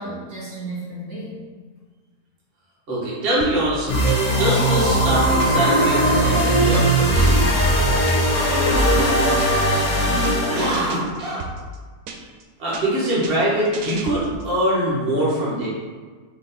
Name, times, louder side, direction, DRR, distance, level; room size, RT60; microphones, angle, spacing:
voice 1, 0.0-1.4 8.7-11.1, equal, 70° right, -8 dB, 2.2 m, -32 dB
voice 2, 2.9-7.5 10.5-11.4 12.1-12.3 12.6-15.7, right 1 dB, 40° right, -8 dB, 1.3 m, -23 dB
sound 1, 3.4-4.4 4.7-7.1 7.4-9.8 10.1-10.4 10.7-12.4 12.7-14.5, right 3 dB, 85° right, 1.1 m, -34 dB
sound 2, 3.9-11.0, right 1 dB, 35° left, 0.8 m, -19 dB
4.7 x 2.7 x 4.0 m, 1.4 s
omnidirectional pair, 1.6 m